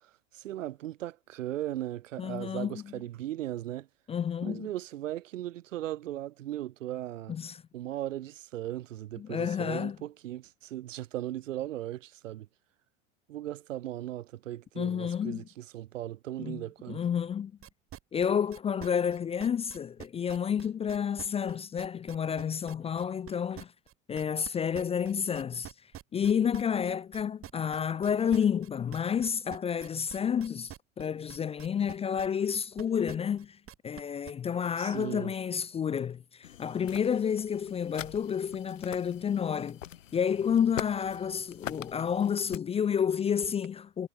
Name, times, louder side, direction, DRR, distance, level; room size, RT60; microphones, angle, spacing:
voice 1, 0.3-3.9 4.4-7.3 7.7-12.5 13.3-17.0 34.8-35.3, right 13 dB, 80° right, 1.1 m, -37 dB
voice 2, 2.2-2.9 4.1-4.7 7.3-7.6 9.2-10.0 14.8-15.4 16.4-17.5 18.1-23.7 24.1-25.7 26.1-33.6 33.8-39.8 40.1-44.1, left 7 dB, 15° left, 0.4 m, -30 dB
sound 1, 17.6-24.5 24.7-34.3, right 11 dB, 35° right, 4.0 m, -47 dB
sound 2, 36.4-42.6, left 11 dB, 90° left, 1.2 m, -43 dB
hypercardioid pair, 95°, 37 cm